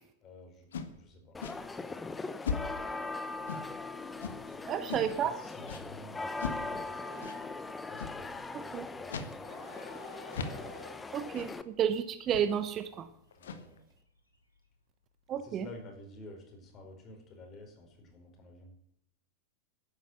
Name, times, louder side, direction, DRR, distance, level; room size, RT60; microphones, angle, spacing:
voice 1, 0.2-1.3 1.8-2.4 4.4-7.0 7.7-9.8 13.3-13.8 15.3-18.7, left 2 dB, 30° left, 3 dB, 5.0 m, -52 dB
sound 1, 0.7-1.0 1.4-1.6 2.4-2.8 3.5-3.8 4.2-4.4 4.9-5.2 5.7-5.8 6.4-6.6 7.2-7.4 8.0-8.2 9.0-9.4 9.7-9.8 10.3-10.7 11.3-11.5 12.3-12.6 13.3-13.8, left 5 dB, 65° left, 1.5 m, -38 dB
sound 2, 1.3-11.6, left 3 dB, 10° left, 0.9 m, -40 dB
Train, 2.5-15.4, left 1 dB, 85° left, 3.0 m, -56 dB
voice 2, 4.7-5.3 8.7-8.9 11.1-13.1 15.3-15.7, right 9 dB, 30° right, 12 dB, 0.9 m, -31 dB
11.5 x 10.5 x 8.1 m, 0.73 s
figure-of-eight pair, 90°, 0 cm